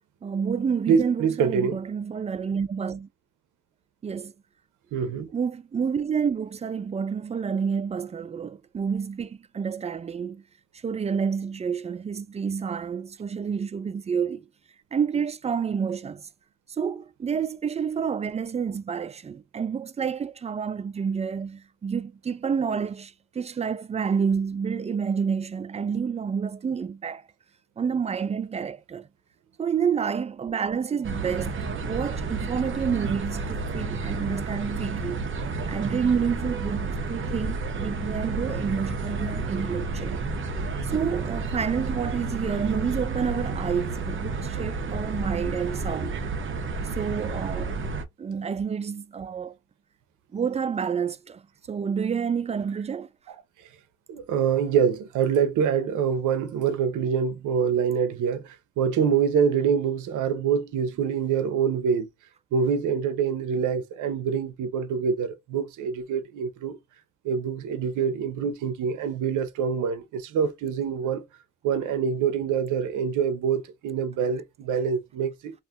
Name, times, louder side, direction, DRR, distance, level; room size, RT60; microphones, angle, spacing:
voice 1, 0.2-3.1 4.0-4.3 5.3-10.4 10.7-14.4 14.9-16.3 16.8-27.2 27.8-29.1 29.6-35.2 35.7-40.2 40.8-46.2 46.9-47.8 48.2-49.6 50.3-53.1, right 6 dB, 20° right, 0.4 m, -29 dB
voice 2, 0.9-1.8 4.9-5.3 54.1-62.1 62.5-66.8 67.2-71.2 71.6-75.6, right 7 dB, 80° right, 0.7 m, -25 dB
sound 1, 31.0-48.0, right 3 dB, 40° right, 0.7 m, -31 dB
2.5 x 2.5 x 3.5 m
cardioid pair, 90°, 30 cm